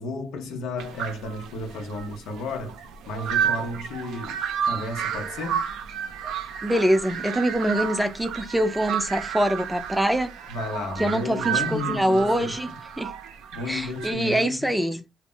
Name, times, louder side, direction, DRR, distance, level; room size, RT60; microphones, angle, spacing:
voice 1, 0.0-2.8 3.1-5.6 10.5-12.6 13.5-14.8, left 2 dB, 85° left, 0.6 m, -33 dB
sound 1, 0.8-14.1, right 8 dB, 85° right, 0.4 m, -31 dB
voice 2, 6.6-10.3 11.0-12.7 13.0-13.1 13.7-15.0, right 1 dB, 5° right, 0.5 m, -24 dB
2.0 x 2.0 x 3.7 m
cardioid pair, 90°, 0 cm